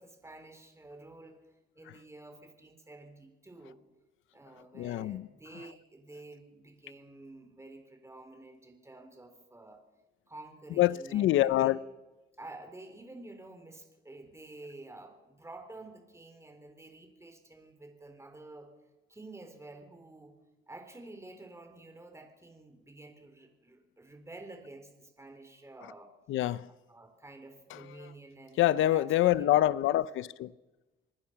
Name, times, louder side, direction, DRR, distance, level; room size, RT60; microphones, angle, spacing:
voice 1, 0.0-3.8 4.3-9.8 10.3-11.7 12.4-18.7 19.1-20.4 20.7-26.1 26.9-28.6 28.9-29.8, right 2 dB, 15° right, 3.9 m, -50 dB
voice 2, 4.7-5.3 10.8-11.8 26.3-26.7 27.7-28.1 28.6-30.5, left 14 dB, 80° left, 0.7 m, -26 dB
26.5 x 19.5 x 5.9 m
cardioid pair, 90°, 20 cm